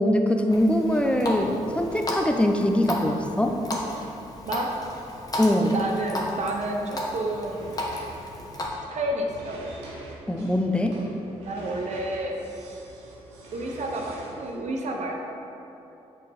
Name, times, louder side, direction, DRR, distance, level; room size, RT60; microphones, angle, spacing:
voice 1, 0.0-3.6 5.4-5.7 10.3-11.0, left 1 dB, 10° left, 3 dB, 0.7 m, -22 dB
Water tap faucet, 0.5-8.7, left 1 dB, 25° left, 1.2 m, -34 dB
voice 2, 5.7-7.7 8.9-9.6 11.0-11.1 11.5-12.4 13.5-15.2, right 1 dB, 55° right, 1 dB, 0.9 m, -30 dB
sound 1, 7.5-14.5, right 2 dB, 90° right, 0.8 m, -44 dB
6.4 x 4.6 x 3.5 m, 2.9 s
hypercardioid pair, 45°, 14 cm